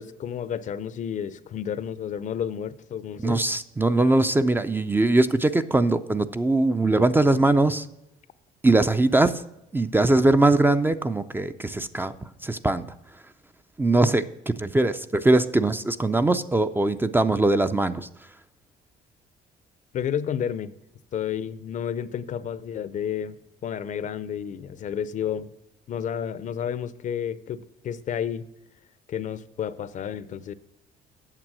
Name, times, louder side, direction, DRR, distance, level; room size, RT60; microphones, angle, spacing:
voice 1, 0.0-3.4 19.9-20.8 21.1-25.5 25.9-28.4 29.1-30.5, left 8 dB, 45° left, 16 dB, 0.6 m, -31 dB
voice 2, 3.2-7.9 8.6-9.4 9.7-12.1 12.4-12.9 13.8-18.1, right 2 dB, 10° right, 10 dB, 0.4 m, -21 dB
8.9 x 6.8 x 6.0 m, 0.87 s
cardioid pair, 110°, 17 cm